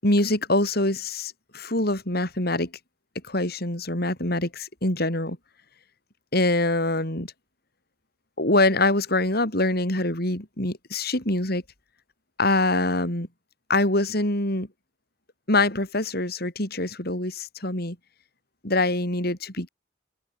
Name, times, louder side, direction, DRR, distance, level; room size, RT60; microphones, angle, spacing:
voice 1, 0.0-2.7 3.3-5.4 6.3-7.3 8.4-11.6 12.4-13.3 13.7-14.7 15.5-18.0 18.6-19.7, left 2 dB, 55° left, 6.3 m, -24 dB
open air
head